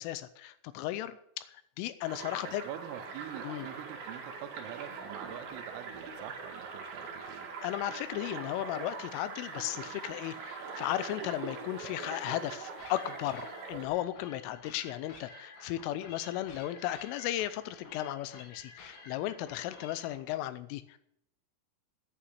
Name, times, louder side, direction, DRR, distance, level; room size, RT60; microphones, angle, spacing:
voice 1, 0.0-2.6 3.4-3.7 7.6-21.0, left 13 dB, 85° left, 13 dB, 3.1 m, -35 dB
sound 1, 2.1-13.9, right 5 dB, 60° right, 3.4 m, -42 dB
voice 2, 2.4-7.5, right 12 dB, 80° right, 11 dB, 3.4 m, -45 dB
sound 2, 12.8-20.2, left 3 dB, 60° left, 3.8 m, -52 dB
9.9 x 8.6 x 9.7 m, 0.74 s
omnidirectional pair, 6.0 m